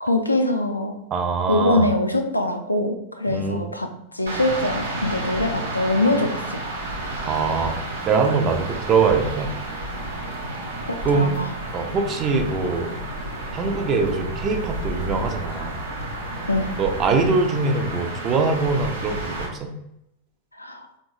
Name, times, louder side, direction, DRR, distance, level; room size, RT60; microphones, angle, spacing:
voice 1, 0.0-1.0 1.5-6.6 10.9-11.5 16.5-16.7 20.6-20.9, left 2 dB, 85° left, 5 dB, 0.4 m, -23 dB
voice 2, 1.1-1.9 3.3-3.7 7.2-7.8 8.0-9.5 11.0-11.4 11.7-12.9 13.5-15.8 16.8-19.7, right 4 dB, 30° right, 5 dB, 0.5 m, -23 dB
sound 1, 4.3-19.5, right 1 dB, 70° right, 0.8 m, -31 dB
3.6 x 2.1 x 3.2 m, 0.80 s
figure-of-eight pair, 90°, 0 cm